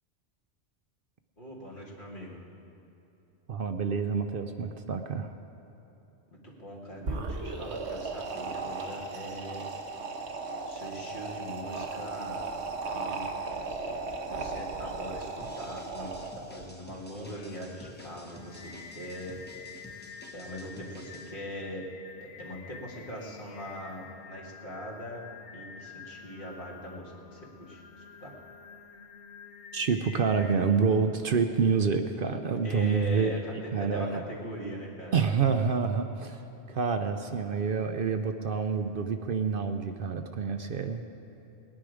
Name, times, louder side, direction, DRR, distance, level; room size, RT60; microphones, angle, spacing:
voice 1, 1.4-2.4 6.4-9.6 10.7-12.4 12.9-13.2 14.3-15.3 15.6-16.3 16.5-18.7 19.0-19.4 20.3-21.8 22.4-25.2 25.5-28.3 32.6-35.2, equal, 50° left, -3 dB, 2.0 m, -41 dB
voice 2, 3.5-5.3 14.8-15.0 29.7-33.3 33.7-34.2 35.1-36.4 36.7-41.0, right 5 dB, 55° right, 7 dB, 0.7 m, -28 dB
sound 1, 7.0-16.6, right 3 dB, 75° right, 1.3 m, -36 dB
sound 2, 15.4-21.3, left 1 dB, 10° left, 0.9 m, -51 dB
Singing, 17.2-30.6, left 6 dB, 75° left, 1.0 m, -48 dB
19.5 x 9.9 x 4.9 m, 3.0 s
omnidirectional pair, 1.2 m